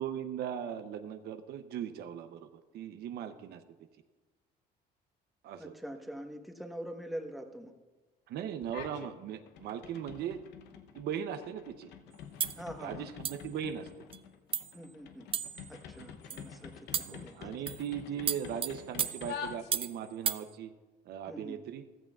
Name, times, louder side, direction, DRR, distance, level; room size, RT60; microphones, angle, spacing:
voice 1, 0.0-2.5 2.7-3.6 5.4-5.7 8.3-10.4 10.9-11.9 12.8-13.9 16.0-16.1 17.1-20.7 21.1-21.8, right 9 dB, 70° right, 9 dB, 0.7 m, -38 dB
voice 2, 5.6-7.7 12.6-13.1 14.7-15.3 15.7-17.5 21.3-21.6, equal, ahead, 4 dB, 1.2 m, -44 dB
sound 1, 8.6-9.1 9.5-20.1, left 7 dB, 85° left, 0.9 m, -47 dB
sound 2, 12.4-12.6 13.2-13.5 14.1-14.2 14.5-14.8 15.3-15.7 16.3-16.5 16.9-17.2 17.7-17.9 18.3-20.0 20.3-20.4, right 8 dB, 35° right, 0.4 m, -34 dB
15.0 x 14.0 x 2.4 m, 1.3 s
cardioid pair, 110°, 17 cm